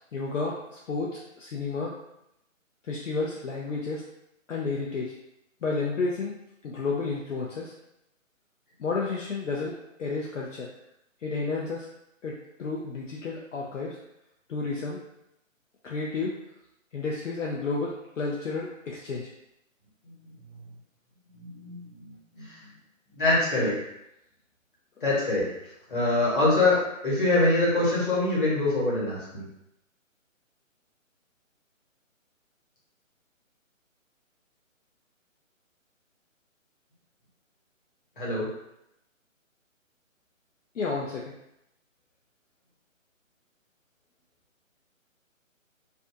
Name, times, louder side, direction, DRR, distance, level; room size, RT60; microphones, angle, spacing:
voice 1, 0.1-1.9 2.9-4.0 4.5-5.1 5.6-6.3 6.6-7.7 8.8-10.7 11.2-11.9 12.2-14.0 14.5-15.0 15.8-16.4 16.9-19.3 40.7-41.4, left 4 dB, 70° left, -3 dB, 0.5 m, -31 dB
voice 2, 21.3-22.7 23.1-23.8 25.0-25.5 25.9-26.8 27.0-29.4 38.2-38.5, left 2 dB, 40° left, -7 dB, 1.1 m, -24 dB
2.5 x 2.2 x 2.6 m, 0.82 s
hypercardioid pair, 180°, 40 cm